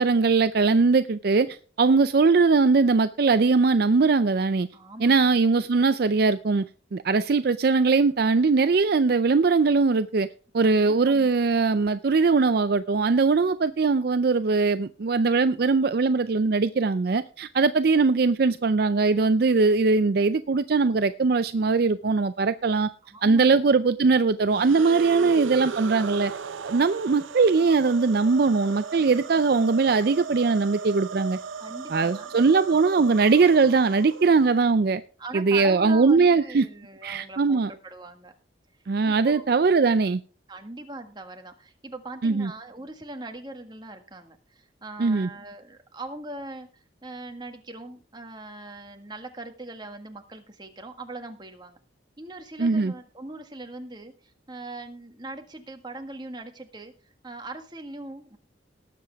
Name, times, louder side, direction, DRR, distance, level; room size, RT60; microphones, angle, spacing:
voice 1, 0.0-4.7 5.0-6.7 6.9-10.3 10.5-22.9 23.2-26.3 26.6-31.4 31.9-35.0 35.3-36.7 37.0-37.7 38.9-40.2 42.2-42.5 45.0-45.3 52.6-52.9, right 4 dB, 50° right, 0.4 m, -21 dB
voice 2, 4.7-5.4 10.6-11.3 23.1-23.7 31.6-32.4 35.2-38.3 39.1-39.5 40.5-51.8 52.2-58.4, right 2 dB, 20° right, 1.7 m, -41 dB
sound 1, 24.5-34.7, right 5 dB, 85° right, 0.7 m, -37 dB
19.0 x 7.6 x 3.5 m
head